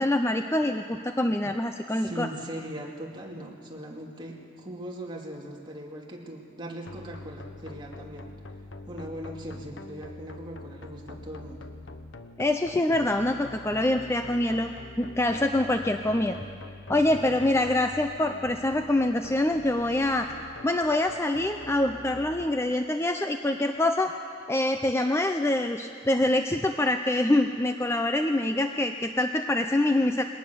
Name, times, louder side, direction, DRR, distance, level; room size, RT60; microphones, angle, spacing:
voice 1, 0.0-2.3 12.4-16.4 16.9-20.3 20.6-24.1 24.5-30.2, left 1 dB, 15° left, 6 dB, 0.5 m, -25 dB
voice 2, 1.9-8.3 8.9-11.7 17.0-17.5, right 1 dB, 25° right, -1 dB, 2.5 m, -40 dB
sound 1, 6.9-22.5, left 2 dB, 75° left, 1.1 m, -44 dB
21.5 x 18.5 x 6.9 m, 2.4 s
head